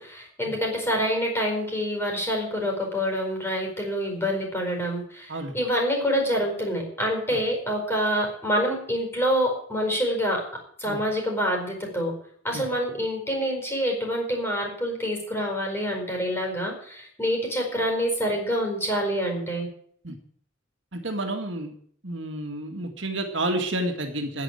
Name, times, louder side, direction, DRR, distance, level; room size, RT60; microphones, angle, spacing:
voice 1, 0.0-10.4 10.8-12.1 12.4-19.7, equal, 10° left, 1 dB, 4.8 m, -26 dB
voice 2, 20.9-21.7 22.0-24.4, right 1 dB, 70° right, 4 dB, 2.0 m, -30 dB
10.0 x 9.3 x 8.9 m, 0.62 s
head